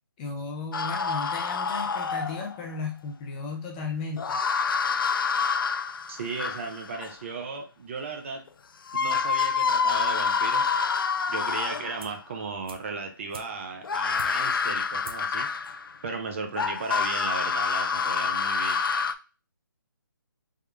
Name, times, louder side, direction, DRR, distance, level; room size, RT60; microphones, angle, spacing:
voice 1, 0.2-4.4, left 4 dB, 20° left, 1 dB, 0.6 m, -35 dB
sound 1, 0.7-2.6 4.2-7.1 8.5-8.6 8.9-12.1 13.8-16.0 16.6-19.1, left 5 dB, 70° left, 0.4 m, -27 dB
voice 2, 6.1-8.4 9.0-10.7 11.3-15.5 16.0-18.8, right 4 dB, 35° right, 4 dB, 0.6 m, -35 dB
sound 2, 12.0-12.3 12.6-14.6 15.0-15.4 15.7-15.8, right 3 dB, 80° right, 0.9 m, -46 dB
3.6 x 2.3 x 3.3 m, 0.33 s
figure-of-eight pair, 155°, 12 cm